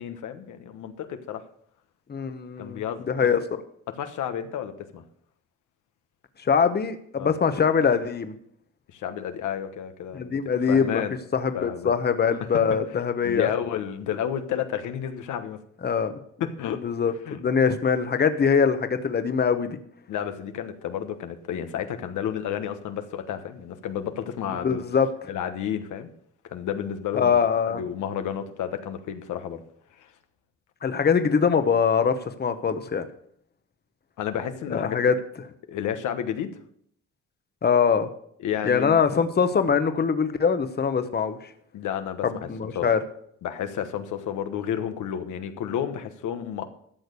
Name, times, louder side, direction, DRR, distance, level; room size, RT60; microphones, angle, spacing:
voice 1, 0.0-1.4 2.6-3.1 3.9-5.0 7.2-7.3 8.9-10.4 10.7-11.2 11.5-11.9 12.7-12.8 13.2-15.6 16.4-16.8 17.2-17.4 20.1-24.8 25.3-26.1 26.5-27.4 27.7-29.6 30.0-30.1 34.2-35.0 35.7-36.5 38.4-39.0 41.7-42.5 42.7-42.9 43.4-46.7, left 9 dB, 80° left, 8 dB, 1.2 m, -31 dB
voice 2, 2.1-2.8 3.1-3.4 6.5-8.3 10.1-11.0 11.3-13.5 15.8-16.1 16.8-19.8 24.6-25.1 27.1-27.8 30.8-33.1 34.7-35.1 37.6-38.1 38.6-41.4 42.2-43.0, left 6 dB, 35° left, 10 dB, 1.1 m, -23 dB
13.0 x 6.5 x 6.8 m, 0.66 s
cardioid pair, 90°, 30 cm